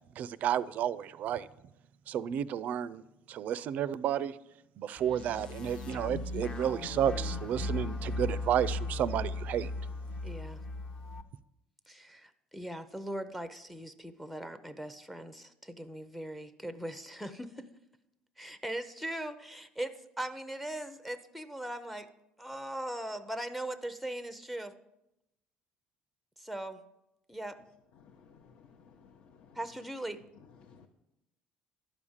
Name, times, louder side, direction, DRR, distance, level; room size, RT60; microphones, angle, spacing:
voice 1, 0.2-1.5 2.1-3.0 3.3-4.4 4.8-9.7, right 9 dB, 50° right, 18 dB, 0.4 m, -31 dB
sound 1, 5.0-11.2, left 2 dB, 30° left, 0.8 m, -37 dB
voice 2, 10.2-10.6 11.9-17.7 18.4-22.1 22.4-24.7 26.4-26.8 27.3-27.6 29.5-30.2, right 1 dB, ahead, 11 dB, 0.6 m, -40 dB
voice 3, 28.0-29.6 30.6-30.9, left 6 dB, 60° left, 2 dB, 0.9 m, -58 dB
11.5 x 4.9 x 7.2 m, 0.88 s
cardioid pair, 125°, 3 cm